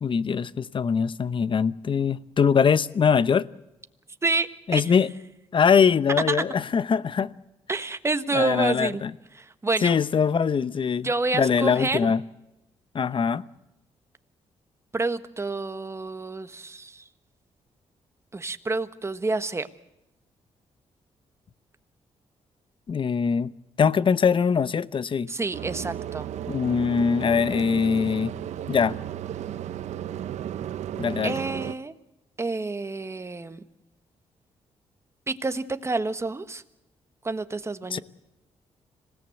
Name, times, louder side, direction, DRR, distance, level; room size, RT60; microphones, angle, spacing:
voice 1, 0.0-3.5 4.7-5.1 5.5-7.3 8.3-9.1 9.8-12.2 12.9-13.4 22.9-23.5 23.8-25.3 26.5-28.4 28.7-29.0 31.0-31.3 37.9-38.0, left 6 dB, 45° left, 0.8 m, -22 dB
voice 2, 4.2-5.0 6.3-6.4 7.7-9.0 9.4-10.0 11.0-12.0 14.9-17.0 18.3-19.7 25.3-26.3 31.2-31.9 32.4-33.6 35.3-36.6 37.2-38.0, right 3 dB, 25° right, 1.4 m, -28 dB
sound 1, 25.5-31.7, right 10 dB, 80° right, 0.8 m, -34 dB
26.0 x 17.5 x 7.9 m
cardioid pair, 85°, 12 cm